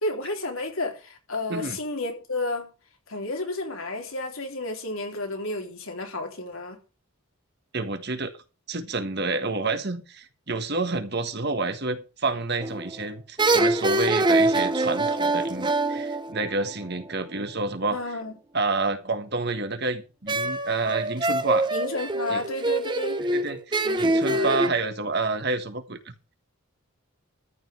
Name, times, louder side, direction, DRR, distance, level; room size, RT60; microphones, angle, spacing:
voice 1, 0.0-2.7 3.1-6.8 17.9-18.3 21.7-23.2 23.8-24.6, left 2 dB, 70° left, 3.7 m, -31 dB
voice 2, 7.7-8.3 8.7-18.0 18.5-21.7 22.3-22.4 23.3-26.1, right 3 dB, 50° right, 1.5 m, -29 dB
sound 1, 12.6-13.0 13.4-17.0 20.3-24.7, right 2 dB, 20° right, 0.8 m, -24 dB
14.0 x 5.3 x 8.0 m
head